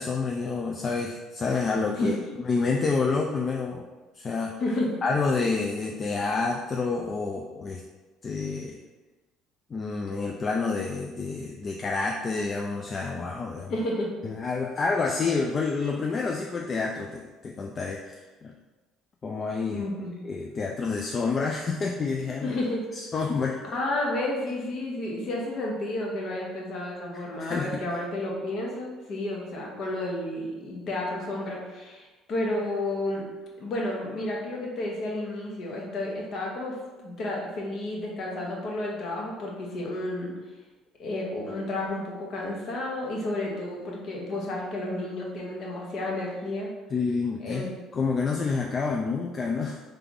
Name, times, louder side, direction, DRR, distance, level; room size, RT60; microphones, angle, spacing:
voice 1, 0.0-2.2 2.4-3.9 4.1-4.5 5.0-7.8 8.2-8.8 9.7-13.7 14.2-18.5 19.2-19.8 20.2-22.6 22.9-23.6 27.1-27.9 46.9-47.6 47.9-49.8, left 4 dB, 35° left, 0 dB, 0.4 m, -28 dB
voice 2, 2.0-2.4 4.6-4.9 13.7-14.1 19.7-20.1 22.4-22.9 23.7-33.3 33.6-40.3 41.0-46.7 47.4-47.7, left 1 dB, 55° left, -2 dB, 1.2 m, -31 dB
3.4 x 3.3 x 3.9 m, 1.2 s
supercardioid pair, 85°, 0 cm